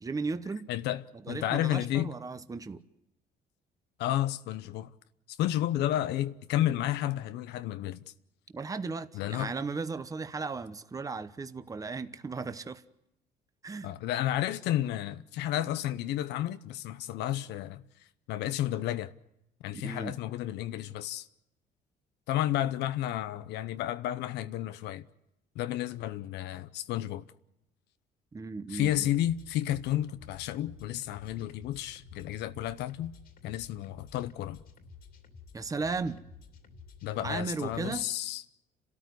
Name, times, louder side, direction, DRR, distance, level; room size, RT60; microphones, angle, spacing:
voice 1, 0.0-0.7 1.3-2.8 8.5-12.8 13.6-13.9 19.7-20.1 28.3-29.1 35.5-36.2 37.2-38.1, right 4 dB, 20° right, 1.1 m, -36 dB
voice 2, 0.7-2.1 4.0-4.9 5.3-8.0 9.1-9.5 13.8-19.1 19.6-21.3 22.3-25.1 25.5-27.2 28.7-33.1 33.4-34.6 37.0-38.4, left 13 dB, 80° left, 0.9 m, -32 dB
sound 1, 28.7-38.0, left 5 dB, 60° left, 2.9 m, -52 dB
29.5 x 13.5 x 9.5 m
cardioid pair, 110°, 17 cm